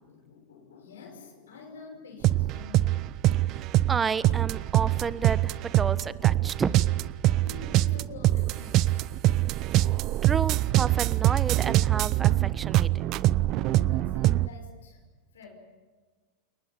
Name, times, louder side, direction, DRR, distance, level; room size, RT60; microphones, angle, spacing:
voice 1, 0.0-4.1 4.6-4.9 7.4-9.3 13.5-15.0 15.3-15.5, left 5 dB, 75° left, 2 dB, 5.5 m, -48 dB
sound 1, 2.2-14.5, right 15 dB, 45° right, 0.7 m, -24 dB
voice 2, 3.9-6.9 10.2-13.0, right 6 dB, 20° right, 16 dB, 1.2 m, -31 dB
29.5 x 19.5 x 7.2 m, 1.5 s
hypercardioid pair, 90°, 0 cm